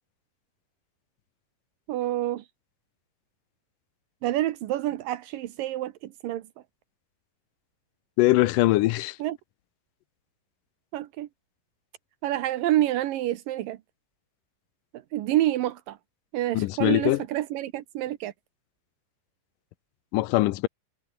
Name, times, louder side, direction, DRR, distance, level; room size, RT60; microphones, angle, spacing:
voice 1, 1.9-2.4 4.2-6.5 9.2-9.4 10.9-11.3 12.2-13.8 15.1-16.0 16.3-18.3, right 14 dB, 85° right, 2.8 m, -28 dB
voice 2, 8.2-9.2 16.5-17.2 20.1-20.7, left 17 dB, 80° left, 2.3 m, -22 dB
omnidirectional pair, 3.9 m